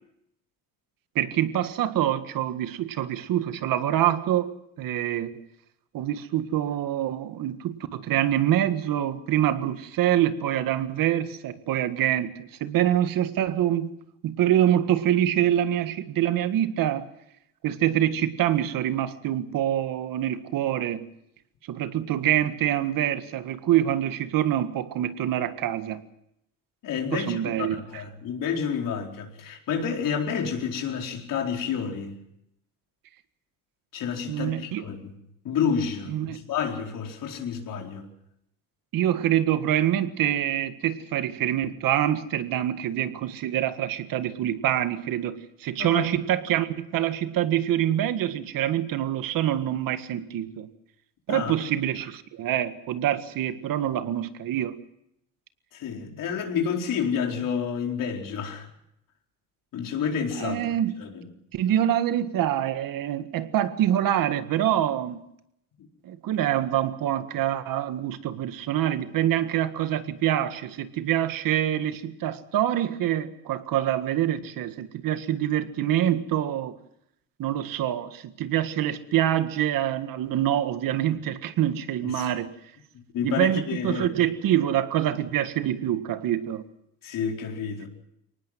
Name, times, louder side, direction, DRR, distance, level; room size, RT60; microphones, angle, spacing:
voice 1, 1.2-5.4 5.9-13.9 14.2-17.1 17.6-21.1 21.7-26.0 27.1-27.8 34.3-34.8 36.1-36.4 38.9-50.7 51.3-54.8 60.4-61.0 61.5-65.2 66.0-76.8 77.4-82.5 83.2-86.6, right 11 dB, 70° right, 1.8 m, -25 dB
voice 2, 26.8-32.2 33.9-35.1 35.4-38.1 45.8-46.1 51.3-51.5 55.7-58.7 59.7-60.6 61.0-61.3 82.0-82.3 82.9-84.3 87.0-87.9, left 7 dB, 70° left, 4.6 m, -29 dB
24.0 x 19.0 x 7.5 m
cardioid pair, 95°, 34 cm